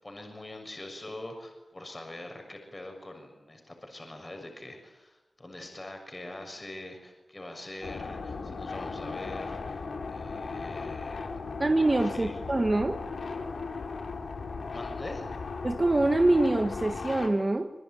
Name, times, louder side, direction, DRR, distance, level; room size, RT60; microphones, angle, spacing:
voice 1, 0.0-11.4 12.1-12.4 14.7-15.3, left 1 dB, 25° left, 4 dB, 6.6 m, -44 dB
sound 1, 7.8-17.3, left 4 dB, 80° left, 3.9 m, -37 dB
voice 2, 11.6-13.0 15.6-17.7, right 2 dB, 30° right, 6 dB, 1.7 m, -25 dB
26.5 x 22.0 x 9.4 m, 1.0 s
wide cardioid pair, 80°, 0 cm